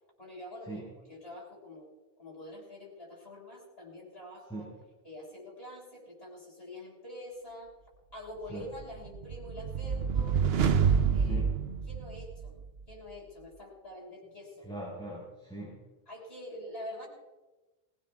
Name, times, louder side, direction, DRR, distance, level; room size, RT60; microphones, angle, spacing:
voice 1, 0.2-1.9 2.2-4.7 5.0-7.7 8.1-10.4 11.1-11.4 11.9-12.6 12.9-14.7 16.1-17.1, left 1 dB, 75° left, -3 dB, 6.6 m, -46 dB
sound 1, 8.8-12.7, right 6 dB, 75° right, 1.0 m, -28 dB
voice 2, 11.2-11.6 14.6-15.8, right 2 dB, 5° left, -8 dB, 5.0 m, -41 dB
20.5 x 18.0 x 3.5 m, 1.1 s
omnidirectional pair, 1.0 m